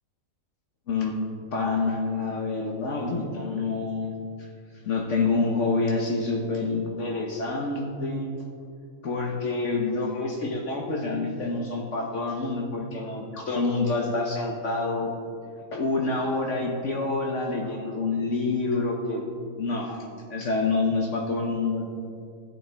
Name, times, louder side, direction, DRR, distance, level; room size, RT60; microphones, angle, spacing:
voice 1, 0.9-1.2 1.5-4.5 4.8-8.3 9.0-15.1 15.7-19.2 19.6-20.0 20.3-21.8, left 3 dB, 60° left, 0 dB, 1.3 m, -27 dB
13.5 x 9.3 x 3.4 m, 2.3 s
omnidirectional pair, 1.4 m